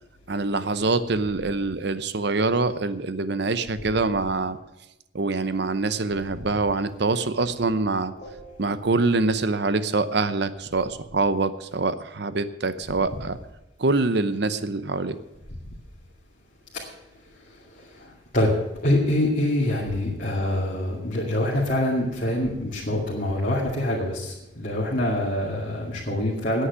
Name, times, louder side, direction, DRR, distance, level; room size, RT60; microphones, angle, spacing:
voice 1, 0.3-4.6 5.1-8.1 8.6-13.4 13.8-15.2, right 3 dB, 55° right, 13 dB, 0.7 m, -25 dB
voice 2, 18.8-24.1 24.6-26.7, left 1 dB, 45° left, -6 dB, 2.4 m, -25 dB
9.8 x 8.5 x 9.7 m, 0.94 s
head